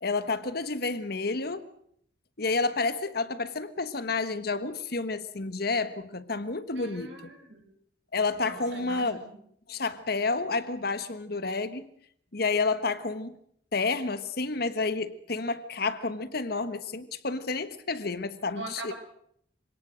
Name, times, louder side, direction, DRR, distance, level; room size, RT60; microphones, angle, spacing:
voice 1, 0.0-1.7 2.4-7.1 8.1-9.2 9.7-11.9 12.3-13.4 13.7-18.9, left 3 dB, 55° left, 12 dB, 1.4 m, -30 dB
voice 2, 6.7-7.6 8.4-9.4 18.6-18.9, right 2 dB, 85° right, 3 dB, 7.0 m, -42 dB
25.5 x 18.0 x 6.4 m, 0.68 s
head